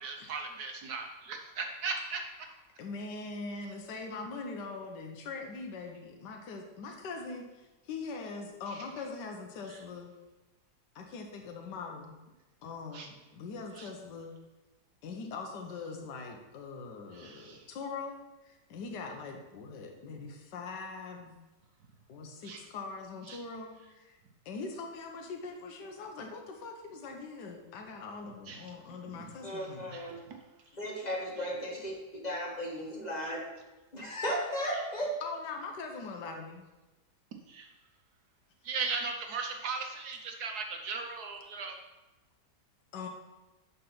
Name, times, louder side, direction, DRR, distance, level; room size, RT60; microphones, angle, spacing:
voice 1, 0.0-2.5 8.7-8.9 9.7-9.8 12.9-13.1 13.7-13.9 17.1-17.7 22.4-22.6 23.3-23.4 28.5-28.6 29.0-29.3 29.9-30.4 31.4-31.5 33.2-33.3 34.7-34.8 37.5-37.7 38.6-41.8, right 4 dB, 65° right, 3 dB, 1.3 m, -38 dB
voice 2, 2.8-7.6 7.9-10.1 10.9-12.1 12.6-14.3 15.0-21.4 22.1-24.2 24.4-30.0 35.2-36.6 42.9-43.1, left 4 dB, 80° left, 2 dB, 1.6 m, -42 dB
voice 3, 29.4-30.3 30.7-33.6 33.9-35.2, equal, 25° left, -2 dB, 1.8 m, -35 dB
11.0 x 4.1 x 5.8 m, 1.1 s
omnidirectional pair, 1.9 m